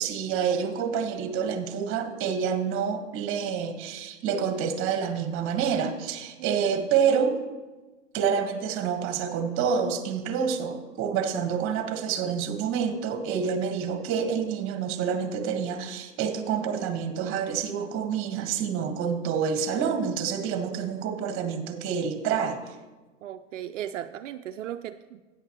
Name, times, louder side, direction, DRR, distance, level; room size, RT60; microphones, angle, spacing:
voice 1, 0.0-7.4 8.1-22.7, right 7 dB, 35° right, 8 dB, 1.3 m, -28 dB
voice 2, 6.4-6.9 23.2-25.2, right 11 dB, 80° right, 8 dB, 0.5 m, -37 dB
13.0 x 9.2 x 3.0 m, 1.2 s
hypercardioid pair, 110°, 37 cm